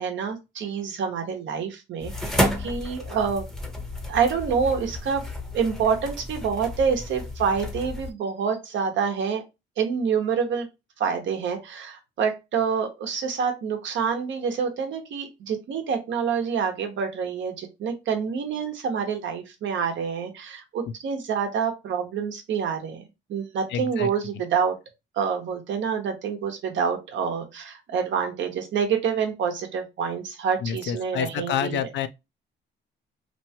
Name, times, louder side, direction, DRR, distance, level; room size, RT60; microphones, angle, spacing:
voice 1, 0.0-3.5 4.1-5.2 5.5-9.4 9.8-10.7 11.0-23.0 23.3-24.8 25.1-31.8, right 6 dB, 70° right, 0.9 m, -27 dB
sound 1, 2.0-8.1, left 1 dB, ahead, 0.7 m, -31 dB
voice 2, 23.7-24.1 30.6-32.1, left 9 dB, 65° left, 0.4 m, -28 dB
2.9 x 2.2 x 2.7 m
cardioid pair, 90°, 20 cm